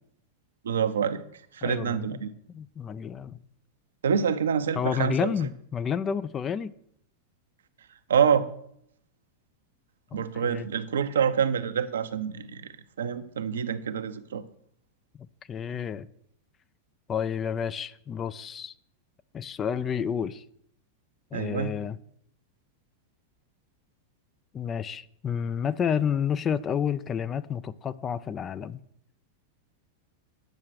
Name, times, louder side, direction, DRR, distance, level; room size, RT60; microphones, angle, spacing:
voice 1, 0.6-1.2 1.5-2.3 4.0-5.3 8.1-8.5 10.1-14.4 21.3-21.8, right 7 dB, 65° right, 0.6 m, -26 dB
voice 2, 1.6-2.2 2.5-3.4 4.7-6.7 10.1-10.7 15.5-16.1 17.1-18.7 19.3-20.4 21.3-22.0 24.5-28.8, left 7 dB, 25° left, 0.4 m, -30 dB
9.0 x 6.5 x 6.0 m
figure-of-eight pair, 90°, 0 cm